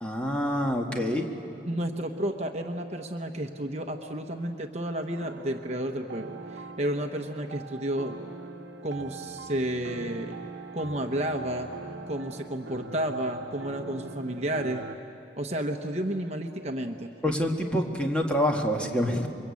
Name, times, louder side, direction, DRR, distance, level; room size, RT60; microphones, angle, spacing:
voice 1, 0.0-1.3 17.2-19.3, equal, 5° left, 1 dB, 1.7 m, -26 dB
voice 2, 1.6-8.2 8.8-10.4 10.7-11.7 12.1-14.8 15.4-17.1, right 1 dB, 35° right, 4 dB, 1.0 m, -31 dB
sound 1, 5.1-15.0, right 3 dB, 75° right, 1.0 m, -42 dB
29.0 x 23.5 x 8.5 m, 2.9 s
head